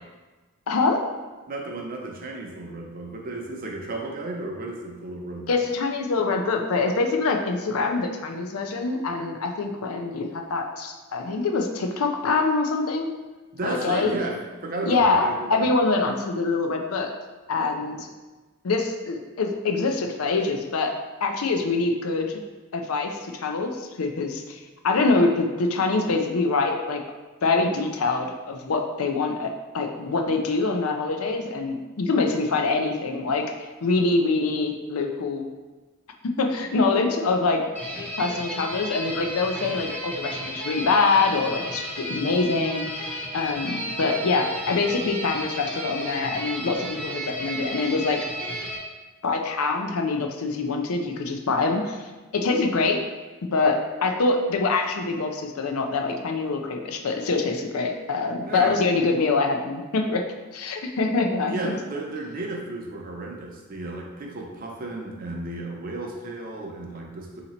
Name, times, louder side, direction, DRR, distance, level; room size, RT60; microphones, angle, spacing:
voice 1, 0.7-1.0 5.5-13.1 13.6-14.2 14.9-17.1 17.5-18.1 18.6-20.9 21.2-22.4 22.7-27.0 27.4-33.5 33.8-35.5 36.2-37.6 38.2-48.2 49.2-52.0 52.3-53.0 53.4-60.2 60.5-61.7, left 3 dB, 85° left, 4 dB, 0.5 m, -24 dB
voice 2, 1.5-5.6 13.5-14.4 14.6-15.7 58.4-58.7 61.4-67.4, right 2 dB, 40° right, 0 dB, 0.6 m, -33 dB
sound 1, 37.7-48.8, equal, 10° left, 0.7 m, -33 dB
3.8 x 2.9 x 4.2 m, 1.3 s
head